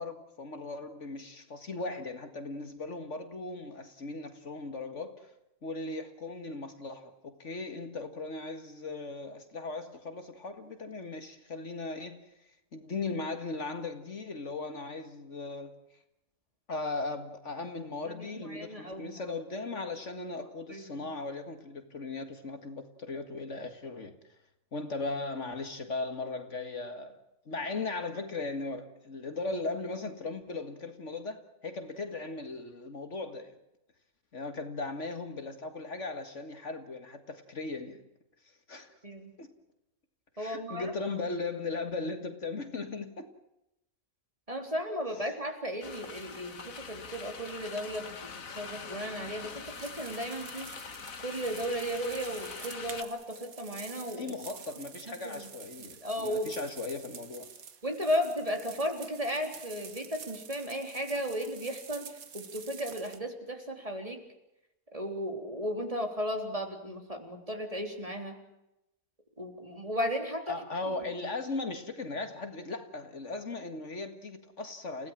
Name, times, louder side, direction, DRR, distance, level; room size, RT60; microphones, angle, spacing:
voice 1, 0.0-5.3 5.6-12.2 12.7-15.7 16.7-24.2 24.7-27.2 27.5-33.5 34.3-38.0 38.7-38.9 39.4-39.5 40.4-43.3 54.2-57.5 70.5-75.1, left 3 dB, 60° left, 2.3 m, -38 dB
voice 2, 18.0-19.2 20.7-21.1 39.0-39.3 40.4-40.9 44.5-50.7 51.2-54.3 55.1-55.5 55.8-56.5 57.8-64.2 64.9-68.3 69.4-70.6, equal, 25° right, 3.8 m, -35 dB
sound 1, 45.8-53.0, left 5 dB, 75° left, 2.0 m, -43 dB
sound 2, 49.5-63.2, right 7 dB, 90° right, 1.9 m, -48 dB
30.0 x 17.0 x 7.5 m
omnidirectional pair, 1.4 m